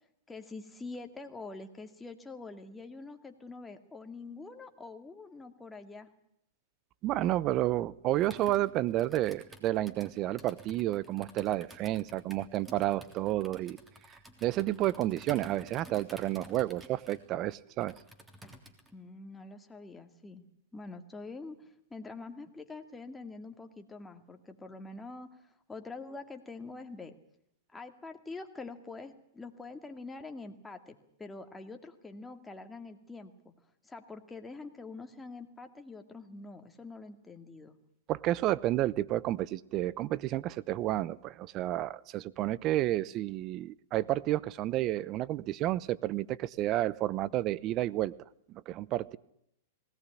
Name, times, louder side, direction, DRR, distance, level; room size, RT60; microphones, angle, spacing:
voice 1, 0.3-6.1 18.9-20.4 20.7-25.3 25.7-27.2 27.7-33.5 33.8-37.8, left 3 dB, 10° left, 6 dB, 2.2 m, -45 dB
voice 2, 7.0-13.8 14.4-17.9 38.1-48.1 48.5-49.2, right 14 dB, 40° right, 20 dB, 0.8 m, -31 dB
Computer keyboard, 8.2-18.9, right 1 dB, 10° right, 3.3 m, -52 dB
20.0 x 18.0 x 9.9 m, 0.77 s
hypercardioid pair, 120°, 0 cm